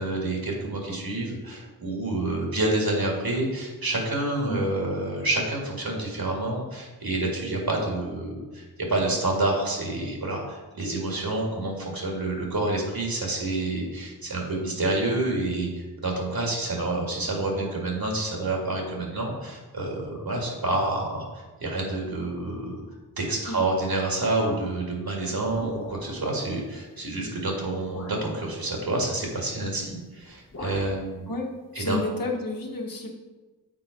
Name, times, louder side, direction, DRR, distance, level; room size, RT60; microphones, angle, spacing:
voice 1, 0.0-22.8 23.2-31.3 31.7-32.0, right 2 dB, 65° right, -1 dB, 2.1 m, -28 dB
sound 1, 25.5-26.3 27.2-27.3 27.8-28.3 29.7-30.0 30.2-31.0, left 2 dB, 40° left, 1.2 m, -41 dB
voice 2, 31.3-33.1, left 2 dB, 60° left, 0 dB, 1.3 m, -31 dB
7.4 x 4.1 x 5.1 m, 1.2 s
wide cardioid pair, 60°, 38 cm